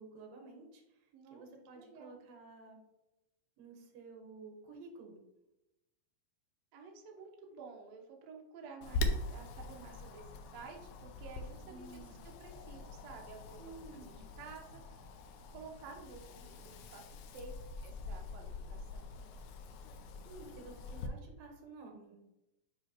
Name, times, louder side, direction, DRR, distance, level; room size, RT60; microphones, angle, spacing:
voice 1, 0.0-2.8 3.6-5.1 11.7-12.2 13.6-14.2 19.8-19.9 20.2-22.2, right 3 dB, 90° right, 2 dB, 2.9 m, -52 dB
voice 2, 1.1-1.4 1.8-2.2 6.7-15.2 15.5-17.0 17.3-17.6 17.8-19.1, right 4 dB, 70° right, 1 dB, 1.7 m, -52 dB
Wind, 8.8-21.1, left 2 dB, 90° left, 1.6 m, -43 dB
8.8 x 4.0 x 2.9 m, 0.95 s
omnidirectional pair, 4.0 m